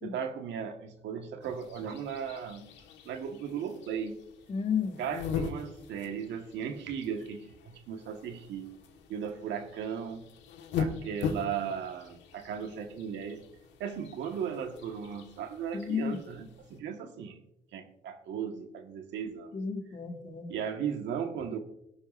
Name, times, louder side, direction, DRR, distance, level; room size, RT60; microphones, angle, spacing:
voice 1, 0.0-2.7 3.0-4.2 5.0-8.7 9.1-10.3 10.8-13.4 13.8-17.4 17.7-19.6 20.5-21.6, right 7 dB, 80° right, 6 dB, 1.4 m, -36 dB
sound 1, 1.4-16.8, left 6 dB, 90° left, 1.4 m, -41 dB
voice 2, 4.5-5.0 15.7-16.2 19.5-20.6, left 6 dB, 40° left, 3 dB, 2.4 m, -32 dB
20.5 x 11.5 x 2.5 m, 0.87 s
supercardioid pair, 70°, 18 cm